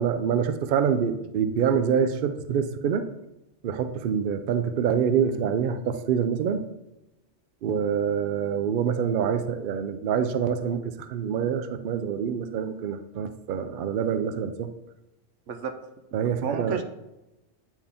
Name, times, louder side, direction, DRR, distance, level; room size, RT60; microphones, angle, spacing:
voice 1, 0.0-3.0 3.6-6.6 7.6-14.7 16.1-16.8, right 7 dB, 60° right, 9 dB, 0.6 m, -26 dB
voice 2, 16.1-16.8, right 5 dB, 80° right, 7 dB, 1.0 m, -32 dB
9.0 x 4.5 x 3.6 m, 0.96 s
omnidirectional pair, 1.3 m